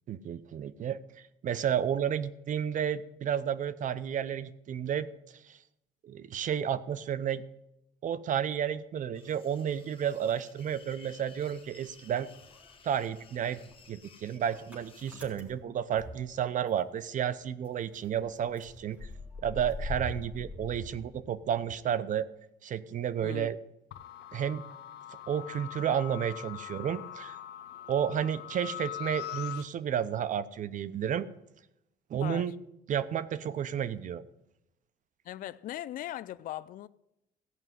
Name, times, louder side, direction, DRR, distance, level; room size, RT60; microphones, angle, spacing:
voice 1, 0.1-1.0 1.4-5.1 5.4-5.6 6.0-7.4 8.0-12.3 12.8-19.0 19.4-22.3 22.6-23.6 24.3-24.6 25.3-27.4 27.9-31.3 32.1-32.5 32.9-34.2, right 9 dB, 50° right, 0.7 m, -31 dB
sound 1, 9.1-15.3, left 6 dB, 30° left, 1.4 m, -57 dB
Motor vehicle (road) / Engine starting, 10.9-12.0 12.3-17.0 17.3-17.4 17.6-21.8, left 2 dB, 10° right, 3.2 m, -44 dB
sound 2, 23.9-29.6, left 12 dB, 80° left, 0.9 m, -42 dB
voice 2, 35.3-36.9, left 13 dB, 55° left, 0.4 m, -39 dB
15.0 x 5.5 x 9.3 m
cardioid pair, 110°, 17 cm